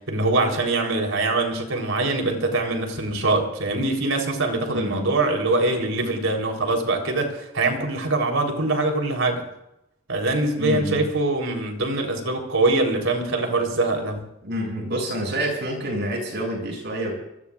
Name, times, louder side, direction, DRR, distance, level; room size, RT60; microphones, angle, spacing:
voice 1, 0.1-9.4 10.1-14.2, right 2 dB, 75° right, 2 dB, 3.9 m, -23 dB
voice 2, 4.7-5.1 10.5-11.1 13.3-13.6 14.4-17.2, equal, 55° right, 0 dB, 7.7 m, -28 dB
26.0 x 19.5 x 2.5 m, 0.83 s
head